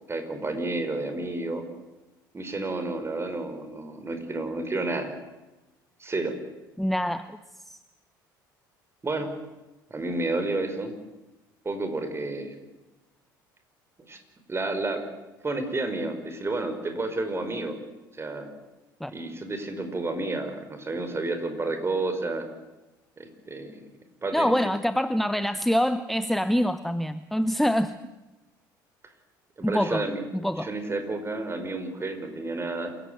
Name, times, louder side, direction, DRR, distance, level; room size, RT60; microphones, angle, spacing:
voice 1, 0.1-1.6 2.3-5.1 6.0-6.3 9.0-9.3 9.9-10.9 11.6-12.6 14.1-14.2 14.5-15.0 15.4-17.8 18.1-18.5 19.1-22.5 23.2-23.8 24.2-24.5 29.6-30.2 30.6-32.9, right 2 dB, 25° right, 8 dB, 5.4 m, -30 dB
voice 2, 6.8-7.4 7.6-7.8 19.0-19.1 24.3-28.0 29.6-30.1 30.4-30.7, equal, ahead, 13 dB, 1.0 m, -25 dB
27.5 x 16.0 x 9.6 m, 1.1 s
hypercardioid pair, 65°, 11 cm